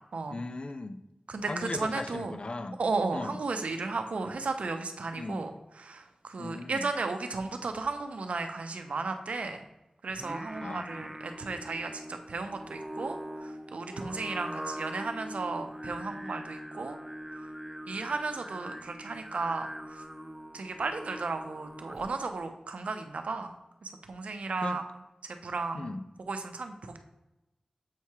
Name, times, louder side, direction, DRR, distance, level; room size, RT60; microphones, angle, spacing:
voice 1, 0.3-1.0 1.4-2.8 3.1-3.4 5.1-5.4 6.4-6.9 10.5-10.9 24.6-24.8 25.7-26.0, left 2 dB, 50° left, 10 dB, 0.4 m, -37 dB
voice 2, 1.3-2.4 2.8-5.5 5.8-9.7 10.0-17.0 17.9-20.0 20.5-23.5 23.8-24.8 25.4-26.0 26.3-27.0, right 3 dB, 80° right, 6 dB, 0.6 m, -34 dB
Singing, 10.1-22.3, equal, 15° right, 0.6 m, -42 dB
7.4 x 2.8 x 4.7 m, 0.96 s
cardioid pair, 45°, 2 cm